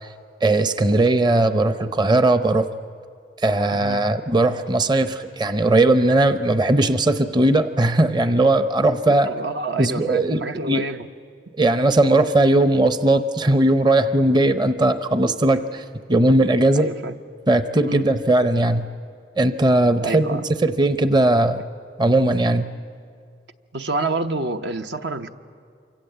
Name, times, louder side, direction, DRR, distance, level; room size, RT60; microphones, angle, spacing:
voice 1, 0.4-2.7 3.4-9.3 9.8-10.4 10.7-10.9 11.6-15.8 16.1-16.9 17.5-18.9 19.4-21.6 22.0-22.7, right 2 dB, 25° right, 10 dB, 0.7 m, -18 dB
voice 2, 3.7-4.0 9.1-11.1 16.7-17.2 17.8-18.1 20.0-20.5 23.7-25.4, right 3 dB, 75° right, 7 dB, 0.9 m, -28 dB
27.5 x 25.0 x 8.0 m, 2.2 s
head